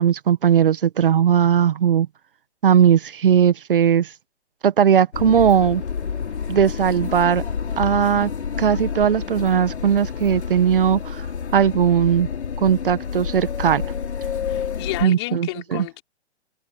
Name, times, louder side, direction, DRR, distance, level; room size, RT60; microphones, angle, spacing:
voice 1, 0.0-2.1 2.6-4.1 4.6-5.8 6.5-7.4 7.8-8.3 8.6-11.3 11.5-12.3 12.6-13.8 15.0-15.8, right 8 dB, 55° right, 1.5 m, -18 dB
sound 1, 5.1-15.0, left 6 dB, 90° left, 5.3 m, -29 dB
voice 2, 14.5-16.0, left 20 dB, 25° left, 4.5 m, -31 dB
hypercardioid pair, 170°, 32 cm